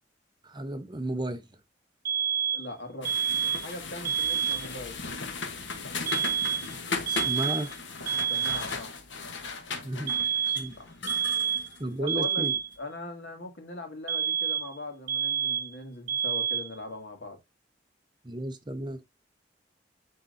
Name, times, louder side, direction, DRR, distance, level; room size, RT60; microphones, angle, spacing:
voice 1, 0.4-1.5 7.1-7.7 9.8-10.2 10.6-10.7 11.8-12.5 18.2-19.1, right 1 dB, 25° right, 0.8 m, -33 dB
sound 1, 2.0-2.7 3.0-3.7 4.0-4.7 6.1-6.7 7.1-7.7 8.1-8.7 10.1-10.7 11.1-11.7 12.1-12.7 14.1-14.8 15.1-15.7 16.1-16.7, right 8 dB, 55° right, 0.6 m, -28 dB
voice 2, 2.5-3.1 3.6-5.0 8.3-8.9 10.8-10.9 12.0-12.5 12.8-17.4, left 2 dB, 70° left, 2.2 m, -40 dB
sound 2, 3.0-12.6, left 4 dB, 85° left, 1.2 m, -37 dB
9.9 x 3.8 x 2.6 m
head